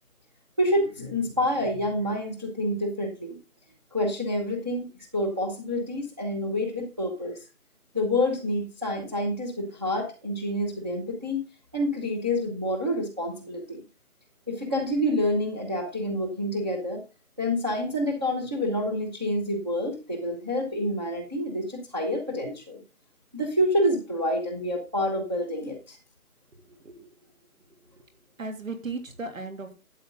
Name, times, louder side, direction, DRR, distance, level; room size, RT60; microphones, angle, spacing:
voice 1, 0.6-3.4 3.9-7.4 7.9-11.4 11.7-13.8 14.5-17.0 17.4-22.8 23.3-26.0, left 1 dB, 15° right, -1 dB, 0.9 m, -28 dB
voice 2, 26.6-27.3 27.6-27.9 28.4-29.7, right 3 dB, 60° right, 6 dB, 3.1 m, -37 dB
12.5 x 8.0 x 3.9 m, 0.31 s
hypercardioid pair, 175°, 45 cm